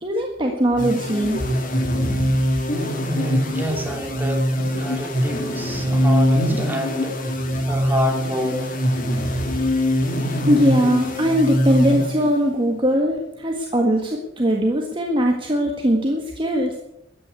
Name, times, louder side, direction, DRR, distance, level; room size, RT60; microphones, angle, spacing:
voice 1, 0.0-1.4 10.5-16.8, equal, 25° right, 1 dB, 1.7 m, -20 dB
sound 1, 0.8-12.5, equal, 45° left, 2.7 m, -22 dB
voice 2, 3.1-7.2 7.7-8.7, equal, 10° right, 1 dB, 2.8 m, -28 dB
14.0 x 9.5 x 8.3 m, 0.86 s
head